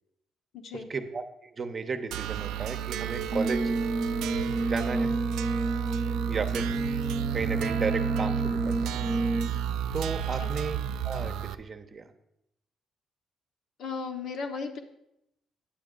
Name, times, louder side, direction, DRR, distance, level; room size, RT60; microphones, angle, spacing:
voice 1, 0.7-3.7 4.6-5.1 6.3-6.7 7.3-9.1 9.9-10.8 11.0-12.1, right 4 dB, 40° right, 7 dB, 0.8 m, -34 dB
sound 1, 2.1-11.5, right 9 dB, 90° right, 0.3 m, -32 dB
Brass instrument, 3.3-9.7, right 2 dB, 5° left, 0.5 m, -30 dB
voice 2, 13.8-14.8, left 5 dB, 70° left, 4 dB, 1.0 m, -35 dB
8.8 x 7.7 x 3.8 m, 0.82 s
cardioid pair, 90°, 0 cm